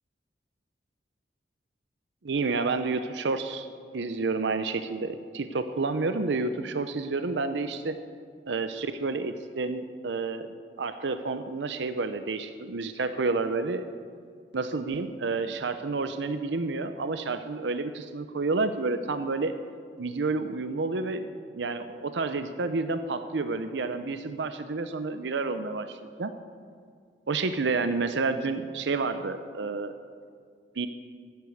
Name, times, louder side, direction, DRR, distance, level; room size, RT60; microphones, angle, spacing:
voice 1, 2.2-3.7 3.9-8.0 8.5-10.5 10.8-13.9 14.5-19.6 20.0-26.3 27.3-30.0 30.8-30.9, right 3 dB, 75° right, 10 dB, 0.6 m, -30 dB
14.5 x 8.4 x 7.8 m, 2.1 s
head